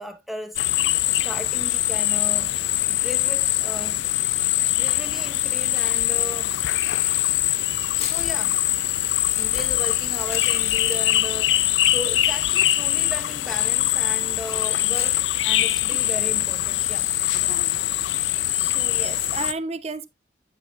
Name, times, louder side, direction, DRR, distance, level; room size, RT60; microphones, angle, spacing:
voice 1, 0.0-2.6 2.9-4.0 4.7-6.5 7.3-7.4 8.0-8.6 9.4-17.6, equal, ahead, 1.0 m, -37 dB
sound 1, 0.6-19.5, left 14 dB, 80° left, 0.5 m, -23 dB
Crumpling crinkling, 7.2-17.7, left 5 dB, 30° left, 2.1 m, -43 dB
voice 2, 18.6-20.1, right 3 dB, 35° right, 0.6 m, -32 dB
9.7 x 7.0 x 2.4 m
head